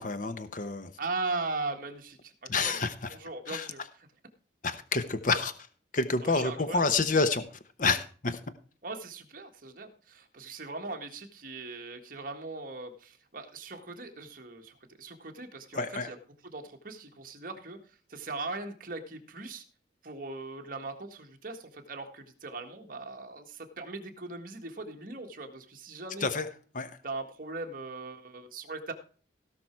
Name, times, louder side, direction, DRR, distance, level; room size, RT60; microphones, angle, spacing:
voice 1, 0.0-0.9 2.5-3.1 3.5-3.7 4.6-5.5 5.9-7.4 7.8-8.4 15.7-16.1 26.2-26.5 26.7-26.9, left 4 dB, 45° left, 11 dB, 0.9 m, -28 dB
voice 2, 1.0-2.8 3.1-4.1 6.2-6.9 8.8-16.2 16.5-17.8 18.1-19.6 20.0-26.3 27.0-28.9, right 3 dB, 45° right, 4 dB, 1.7 m, -39 dB
17.0 x 6.0 x 4.6 m, 0.40 s
head